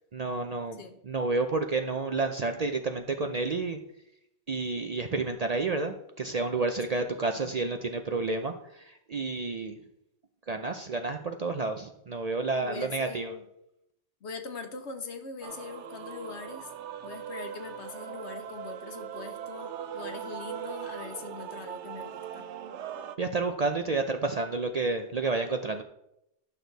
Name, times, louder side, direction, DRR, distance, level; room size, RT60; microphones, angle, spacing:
voice 1, 0.1-0.8 1.0-3.8 4.5-9.8 10.5-13.3 23.2-25.8, right 3 dB, 45° right, 6 dB, 0.5 m, -30 dB
voice 2, 12.6-13.4 14.2-16.7 17.0-22.4, left 4 dB, 70° left, 7 dB, 1.3 m, -42 dB
Male singing / Female singing / Musical instrument, 15.4-23.2, right 9 dB, 80° right, 1.0 m, -40 dB
11.0 x 6.4 x 4.0 m, 0.81 s
omnidirectional pair, 1.2 m